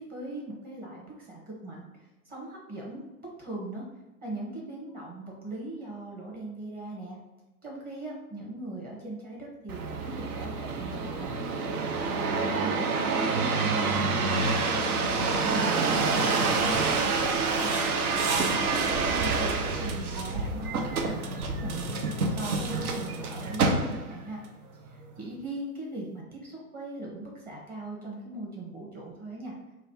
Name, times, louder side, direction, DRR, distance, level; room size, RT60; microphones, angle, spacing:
voice 1, 0.0-1.9 2.2-3.0 3.4-3.8 4.2-7.2 7.6-11.3 11.7-12.9 13.3-17.2 17.6-24.4 24.8-29.5, right 2 dB, 20° right, -3 dB, 0.9 m, -39 dB
sound 1, 9.7-24.2 24.8-25.4, right 4 dB, 75° right, 0.7 m, -27 dB
3.2 x 2.3 x 4.3 m, 1.1 s
figure-of-eight pair, 105°, 45 cm